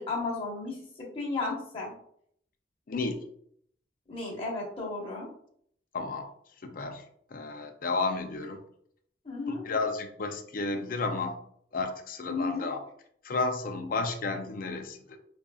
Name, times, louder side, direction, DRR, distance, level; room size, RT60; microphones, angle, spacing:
voice 1, 0.0-1.9 4.1-5.3 9.2-9.6 12.3-12.7, left 3 dB, 30° left, -4 dB, 1.2 m, -34 dB
voice 2, 2.9-3.2 5.9-6.3 6.6-7.0 7.3-8.6 9.5-11.4 11.7-12.8 13.2-15.2, left 3 dB, 50° left, 5 dB, 0.5 m, -32 dB
5.0 x 2.6 x 2.3 m, 0.65 s
head